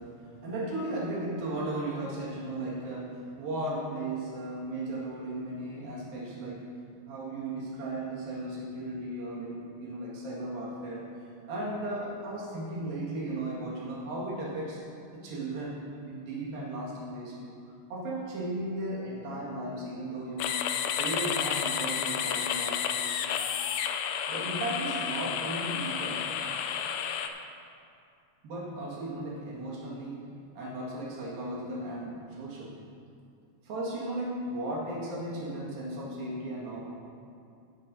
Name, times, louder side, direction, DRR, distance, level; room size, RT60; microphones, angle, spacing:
voice 1, 0.0-6.7 7.1-11.1 11.5-14.8 15.1-17.6 17.9-20.6 21.0-23.3 24.3-26.3 28.4-30.3 30.6-32.8 33.6-36.9, right 1 dB, 80° right, -6 dB, 3.8 m, -36 dB
sound 1, 20.4-27.3, left 8 dB, 85° left, 1.7 m, -31 dB
16.0 x 10.5 x 2.8 m, 2.4 s
omnidirectional pair, 4.0 m